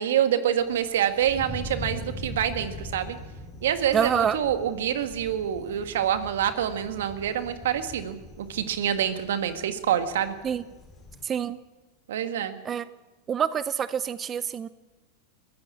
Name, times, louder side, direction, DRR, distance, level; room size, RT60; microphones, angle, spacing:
voice 1, 0.0-3.2 3.6-10.3 12.1-12.6, right 10 dB, 80° right, 9 dB, 1.8 m, -26 dB
Thunder, 0.6-11.2, left 1 dB, 25° left, 5.2 m, -42 dB
voice 2, 3.9-4.4 10.4-10.6 11.2-11.6 12.6-12.8 13.3-14.7, right 8 dB, 30° right, 16 dB, 0.6 m, -26 dB
22.5 x 15.0 x 8.5 m, 1.2 s
hypercardioid pair, 105°, 0 cm